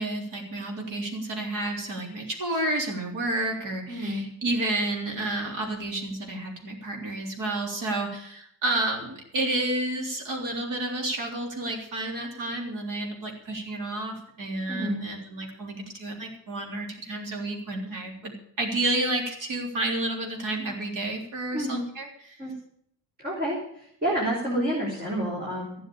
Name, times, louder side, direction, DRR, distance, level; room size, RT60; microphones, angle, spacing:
voice 1, 0.0-22.4, right 2 dB, 45° right, 1 dB, 3.6 m, -30 dB
voice 2, 3.9-4.2 14.7-15.0 21.5-21.8 22.4-22.6 23.2-25.8, right 1 dB, 20° right, -4 dB, 3.8 m, -29 dB
15.0 x 7.9 x 8.6 m, 0.68 s
cardioid pair, 175°, 43 cm